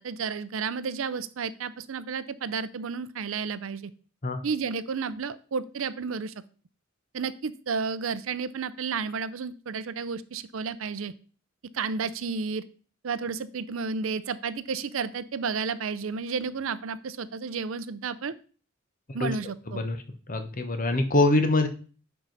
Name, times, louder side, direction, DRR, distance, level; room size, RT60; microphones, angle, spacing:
voice 1, 0.0-3.9 4.4-6.3 7.1-11.1 11.7-12.6 13.0-18.3 19.1-19.8, right 5 dB, 80° right, 15 dB, 0.5 m, -32 dB
voice 2, 19.7-20.0 20.3-21.7, left 2 dB, 45° left, 7 dB, 1.0 m, -24 dB
9.6 x 4.7 x 4.0 m, 0.39 s
head